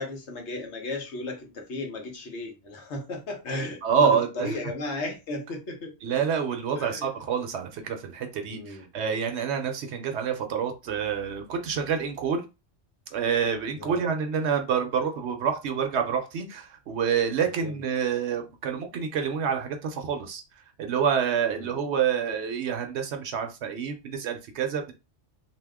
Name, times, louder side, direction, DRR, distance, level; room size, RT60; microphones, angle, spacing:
voice 1, 0.0-5.9 6.7-7.1 8.5-8.9 13.7-14.1 17.6-17.8 21.5-21.8, left 2 dB, 70° left, 1.1 m, -35 dB
voice 2, 3.8-4.5 6.0-12.4 13.1-20.4 20.8-24.9, right 7 dB, 70° right, 0.8 m, -27 dB
2.8 x 2.0 x 3.4 m
omnidirectional pair, 1.2 m